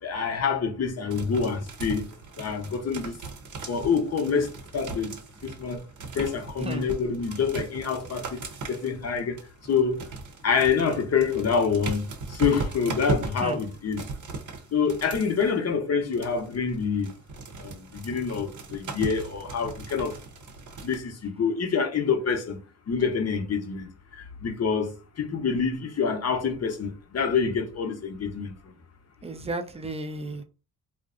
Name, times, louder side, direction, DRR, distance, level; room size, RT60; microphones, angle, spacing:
voice 1, 0.0-2.1 2.4-3.2 3.7-5.2 5.4-5.8 6.1-8.4 8.7-10.0 10.4-14.0 14.7-17.1 17.6-20.2 20.8-22.6 22.9-24.9 25.2-28.7, left 6 dB, 40° left, 0.7 m, -27 dB
sound 1, 1.1-15.5 16.1-21.0, right 4 dB, 50° right, 0.7 m, -38 dB
voice 2, 29.2-30.4, right 2 dB, 15° right, 0.4 m, -33 dB
2.5 x 2.1 x 2.5 m
supercardioid pair, 60°, 38 cm